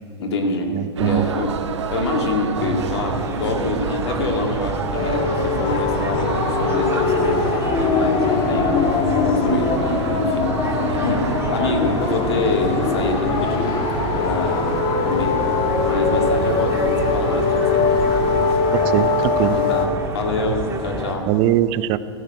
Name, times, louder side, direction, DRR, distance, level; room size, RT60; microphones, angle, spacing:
voice 1, 0.2-1.6 1.9-8.7 9.2-9.8 10.1-10.5 11.0-13.8 14.1-14.8 15.0-15.4 15.8-18.3 19.5-21.3, left 3 dB, 65° left, 2 dB, 1.9 m, -26 dB
voice 2, 0.7-1.3 18.7-19.6 21.3-22.0, right 13 dB, 40° right, 14 dB, 0.6 m, -21 dB
sound 1, 1.0-18.6, right 6 dB, 75° right, 0.8 m, -30 dB
sound 2, 2.6-21.1, right 3 dB, 20° right, 1.7 m, -29 dB
sound 3, 4.9-19.9, left 5 dB, 35° left, 1.3 m, -21 dB
14.0 x 6.6 x 8.9 m, 2.3 s
figure-of-eight pair, 100°, 15 cm